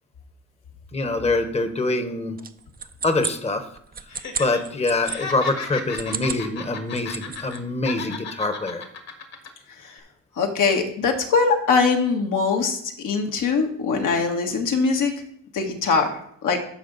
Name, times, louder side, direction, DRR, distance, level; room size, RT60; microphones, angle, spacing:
voice 1, 0.9-2.4 3.0-3.6 4.4-8.8, left 2 dB, 20° left, 8 dB, 1.0 m, -24 dB
sound 1, 2.4-5.2 5.8-6.5 6.8-7.6, right 6 dB, 30° right, 0.6 m, -33 dB
Laughter, 4.1-4.6 4.9-7.6 7.8-9.5 9.8-10.0, left 5 dB, 55° left, 1.8 m, -35 dB
voice 2, 10.4-15.1 15.5-16.1 16.4-16.6, left 4 dB, 70° left, 2 dB, 1.6 m, -22 dB
13.0 x 4.9 x 4.0 m, 0.68 s
cardioid pair, 80°, 32 cm